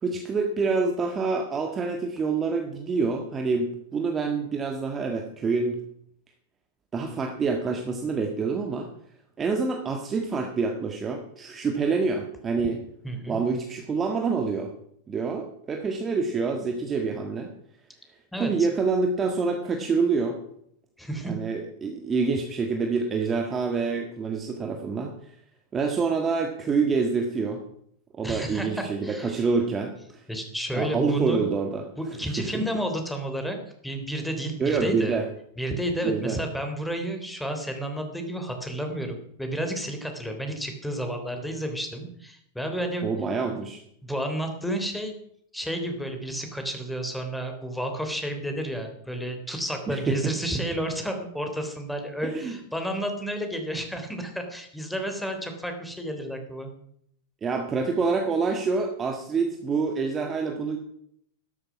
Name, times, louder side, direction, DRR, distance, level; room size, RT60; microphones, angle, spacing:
voice 1, 0.0-5.8 6.9-8.9 9.4-12.8 13.3-14.7 15.1-17.5 18.4-20.4 21.2-25.1 25.7-27.6 28.1-30.2 30.7-31.9 32.4-32.7 34.6-35.2 36.0-36.4 43.0-43.8 49.9-50.3 52.2-52.6 57.4-60.8, right 4 dB, 20° right, 4 dB, 1.7 m, -27 dB
voice 2, 13.0-13.4 18.3-18.5 21.0-21.4 28.2-29.4 30.3-31.4 32.0-33.6 33.8-35.2 35.6-43.0 44.0-45.1 45.5-56.7, right 1 dB, 5° left, 4 dB, 3.3 m, -31 dB
13.0 x 13.0 x 5.9 m, 0.69 s
figure-of-eight pair, 90°, 0 cm